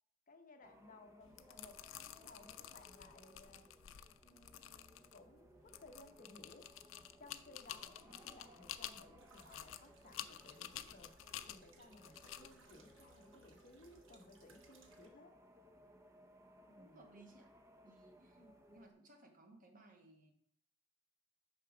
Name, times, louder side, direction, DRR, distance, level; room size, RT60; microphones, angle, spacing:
voice 1, 0.3-3.7 4.2-6.7 7.2-11.1 11.5-15.3 16.7-17.0 18.3-18.6, left 2 dB, 40° left, 5 dB, 0.8 m, -61 dB
sound 1, 0.6-18.9, equal, 15° right, 0.5 m, -64 dB
sound 2, 1.2-14.0, left 11 dB, 65° left, 0.4 m, -52 dB
sound 3, 9.2-15.1, right 3 dB, 65° right, 1.1 m, -67 dB
voice 2, 16.8-17.6 17.8-18.4 18.7-20.3, right 2 dB, 40° right, 4 dB, 1.2 m, -62 dB
6.7 x 5.8 x 4.9 m, 0.66 s
head